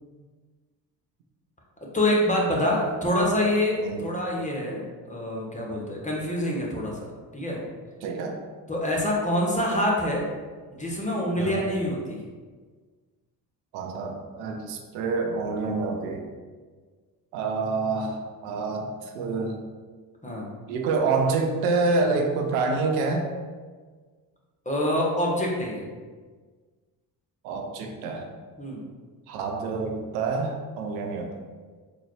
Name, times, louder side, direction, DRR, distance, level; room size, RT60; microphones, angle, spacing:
voice 1, 1.8-7.1 7.3-7.6 8.7-10.2 10.7-12.2 20.2-20.5 24.6-25.8 28.6-28.8, left 1 dB, 15° left, -3 dB, 1.1 m, -26 dB
voice 2, 8.0-8.4 11.4-11.6 13.7-16.2 17.3-18.2 18.4-18.9 19.1-19.6 20.7-23.3 27.4-28.2 29.3-31.3, right 3 dB, 80° right, 3 dB, 0.6 m, -27 dB
3.9 x 2.5 x 3.2 m, 1.5 s
hypercardioid pair, 45°, 49 cm